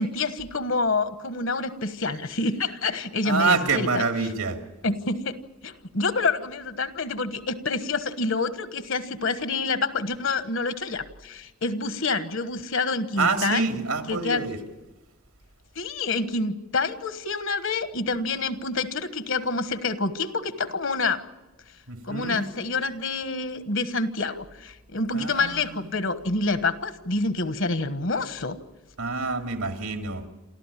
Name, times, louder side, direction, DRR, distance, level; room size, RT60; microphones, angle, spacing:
voice 1, 0.0-4.3 4.8-5.4 5.6-13.7 14.1-14.4 15.7-21.2 22.0-28.6, left 3 dB, 60° left, 11 dB, 1.3 m, -27 dB
voice 2, 3.2-4.6 13.2-14.6 21.9-22.4 25.1-25.8 29.0-30.2, right 4 dB, 85° right, 5 dB, 2.7 m, -26 dB
28.5 x 14.0 x 9.9 m, 1.1 s
head